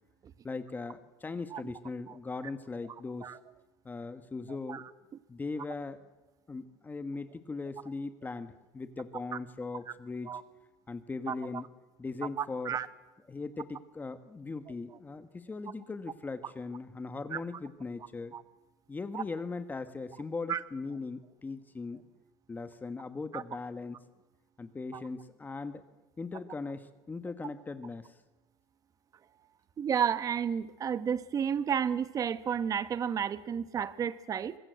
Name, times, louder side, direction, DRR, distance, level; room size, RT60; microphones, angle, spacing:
voice 1, 0.4-3.3 3.8-4.9 5.3-6.0 6.5-10.3 10.9-11.7 12.0-12.8 13.3-18.4 18.9-22.0 22.5-24.0 24.6-25.8 26.2-28.2, left 3 dB, 15° left, 10 dB, 1.3 m, -39 dB
voice 2, 12.4-12.9 17.3-17.4 18.3-18.4 19.1-19.2 20.5-20.6 23.3-23.4 24.9-25.0 29.8-34.6, right 8 dB, 35° right, 14 dB, 1.2 m, -31 dB
24.5 x 21.0 x 8.0 m, 1.1 s
supercardioid pair, 125°, 11 cm